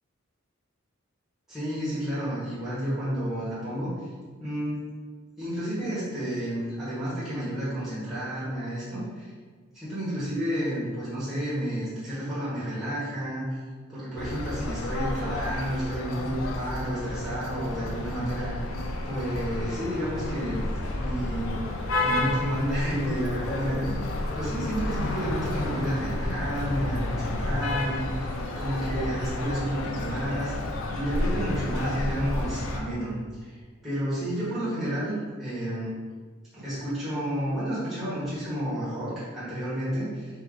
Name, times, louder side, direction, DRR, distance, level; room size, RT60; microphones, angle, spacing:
voice 1, 1.5-3.9 4.4-4.8 5.4-9.3 9.7-13.5 13.9-18.7 19.0-20.6 20.9-21.6 22.0-23.9 24.3-35.9 36.5-40.3, equal, ahead, -13 dB, 1.5 m, -31 dB
sound 1, 14.2-32.8, left 2 dB, 70° left, 0.5 m, -31 dB
4.4 x 2.9 x 3.8 m, 1.5 s
head